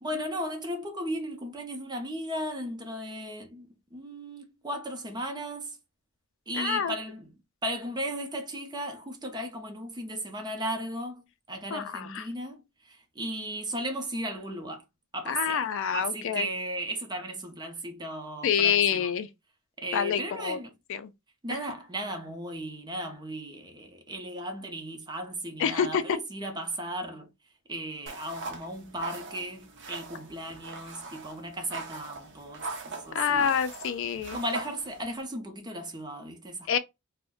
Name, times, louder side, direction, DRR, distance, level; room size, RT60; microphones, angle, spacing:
voice 1, 0.0-5.8 6.5-7.3 7.6-14.8 15.1-15.6 15.9-19.1 19.8-20.7 21.4-27.3 27.7-33.5 34.3-36.7, right 1 dB, 20° right, 0.6 m, -36 dB
voice 2, 6.5-6.9 11.7-12.3 15.3-16.5 18.4-19.3 19.9-20.6 20.9-21.1 25.6-26.0 33.1-34.4 36.7-36.8, left 8 dB, 65° left, 0.4 m, -27 dB
sound 1, 28.1-35.2, right 3 dB, 60° right, 0.7 m, -41 dB
2.5 x 2.1 x 3.5 m
head